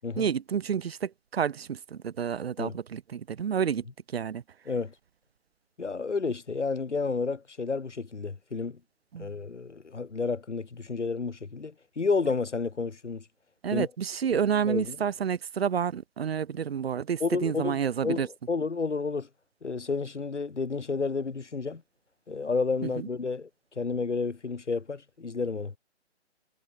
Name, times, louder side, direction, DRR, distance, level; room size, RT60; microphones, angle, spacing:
voice 1, 0.2-3.9 4.1-4.4 9.1-9.3 13.6-18.3 22.8-23.1, right 7 dB, 60° right, 3.1 m, -29 dB
voice 2, 5.8-8.8 9.2-13.2 13.7-13.9 14.6-15.0 17.2-17.8 18.0-19.3 19.6-21.8 22.3-23.5 23.7-25.7, left 4 dB, 85° left, 6.8 m, -31 dB
hypercardioid pair, 145°, 35 cm